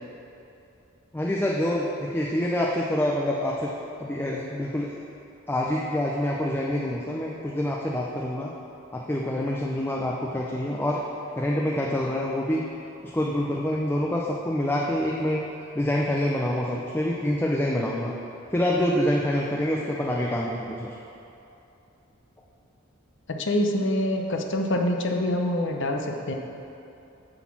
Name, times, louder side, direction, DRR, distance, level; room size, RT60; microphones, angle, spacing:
voice 1, 1.1-3.7 4.0-4.9 5.5-8.5 8.9-11.0 11.4-12.6 13.0-15.4 15.7-18.1 18.5-21.0, left 1 dB, 10° left, -3 dB, 0.5 m, -26 dB
voice 2, 23.3-26.3, left 1 dB, 60° left, 2 dB, 0.8 m, -25 dB
9.7 x 4.1 x 7.3 m, 2.8 s
head